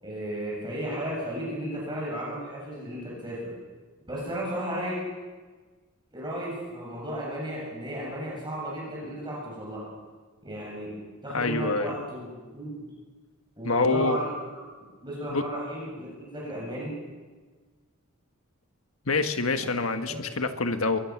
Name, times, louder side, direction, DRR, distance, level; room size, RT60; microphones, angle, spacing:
voice 1, 0.0-3.5 4.1-5.0 6.1-9.8 10.4-10.9 11.2-12.3 12.5-12.8 13.6-14.3 15.0-16.1 16.3-17.0 19.6-19.7 20.1-20.2, equal, 20° right, -4 dB, 7.6 m, -34 dB
voice 2, 11.3-12.0 13.6-14.2 15.3-15.4 19.1-21.0, left 3 dB, 80° left, 7 dB, 1.6 m, -26 dB
23.5 x 20.5 x 6.1 m, 1.4 s
head